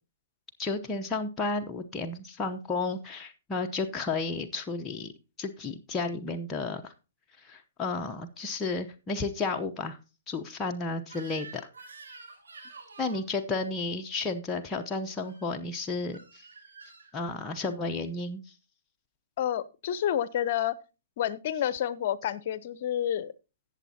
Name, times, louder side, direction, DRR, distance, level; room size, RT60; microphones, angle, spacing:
voice 1, 0.6-5.1 5.4-6.9 7.4-10.0 10.3-11.6 13.0-16.4 17.1-18.4, left 3 dB, 15° left, 0.8 m, -32 dB
Crying sobbing / Screech, 11.1-13.3 15.2-15.5 16.1-17.1, right 4 dB, 80° right, 4.7 m, -48 dB
voice 2, 19.4-20.7 21.2-23.3, left 10 dB, 55° left, 0.7 m, -29 dB
17.0 x 7.1 x 2.8 m
hypercardioid pair, 130°, 0 cm